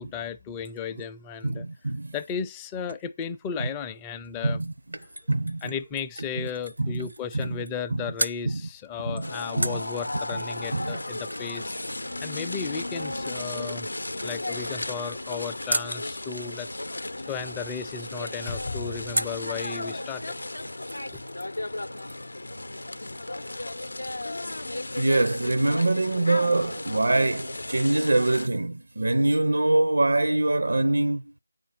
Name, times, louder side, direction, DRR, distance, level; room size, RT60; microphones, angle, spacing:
voice 1, 0.0-1.7 2.1-4.6 5.6-11.8 12.2-13.9 14.2-16.7 17.2-20.4, left 6 dB, 10° left, 0.4 m, -35 dB
voice 2, 1.4-2.1 3.6-3.7 4.4-4.7 5.3-5.6 6.4-6.5 6.8-7.1 7.3-7.6 7.9-8.0 8.5-8.6 9.0-9.3 9.6-9.8 10.3-10.4 10.7-11.0 25.0-31.2, right 2 dB, 70° right, 0.5 m, -24 dB
sound 1, 4.2-7.9 8.2-8.4 9.6-16.0 19.1-19.5 20.0-20.1 20.3-21.3 21.5-21.6, right 1 dB, 90° right, 0.9 m, -37 dB
sound 2, 9.2-28.5, left 2 dB, 80° left, 0.6 m, -35 dB
Slam, 14.7-15.6 17.7-17.9 18.4-19.6, left 4 dB, 40° left, 0.7 m, -39 dB
8.5 x 5.1 x 5.8 m
figure-of-eight pair, 170°, 0 cm